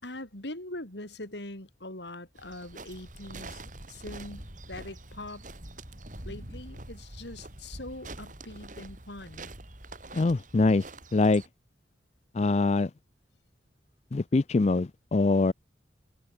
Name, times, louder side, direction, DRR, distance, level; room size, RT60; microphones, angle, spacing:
voice 1, 0.0-5.5 6.2-9.5, left 1 dB, 75° left, 5.2 m, -42 dB
sound 1, 2.4-11.5, right 2 dB, 45° right, 5.1 m, -45 dB
voice 2, 10.1-10.9 11.1-11.4 12.3-12.9 14.1-15.5, left 3 dB, 35° left, 0.4 m, -24 dB
open air
head